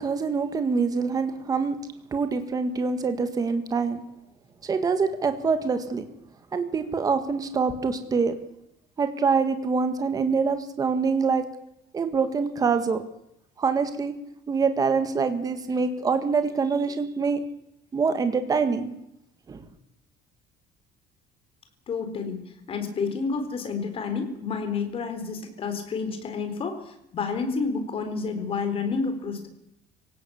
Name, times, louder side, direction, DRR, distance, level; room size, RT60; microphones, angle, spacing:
voice 1, 0.0-1.8 2.1-4.0 4.6-6.0 6.5-8.4 9.0-11.5 11.9-13.0 13.6-14.1 14.5-17.4 17.9-18.9 19.5-19.7, right 5 dB, 20° right, 8 dB, 1.8 m, -25 dB
voice 2, 21.9-22.4 22.7-26.7 27.1-29.5, left 5 dB, 35° left, 7 dB, 4.2 m, -29 dB
25.5 x 17.0 x 8.7 m, 0.82 s
cardioid pair, 175°, 17 cm